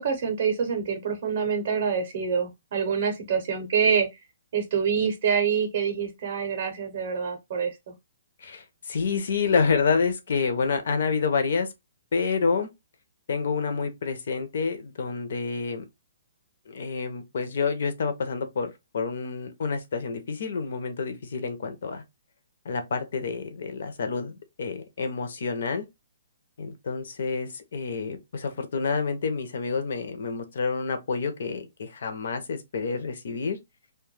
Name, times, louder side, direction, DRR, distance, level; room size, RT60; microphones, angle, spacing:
voice 1, 0.0-4.1 4.5-7.9, right 6 dB, 40° right, 0.6 m, -26 dB
voice 2, 8.4-11.7 12.1-12.7 13.3-15.8 16.7-22.0 22.6-25.8 26.6-33.6, left 5 dB, 50° left, 0.5 m, -28 dB
2.1 x 2.0 x 3.1 m
hypercardioid pair, 175°, 0 cm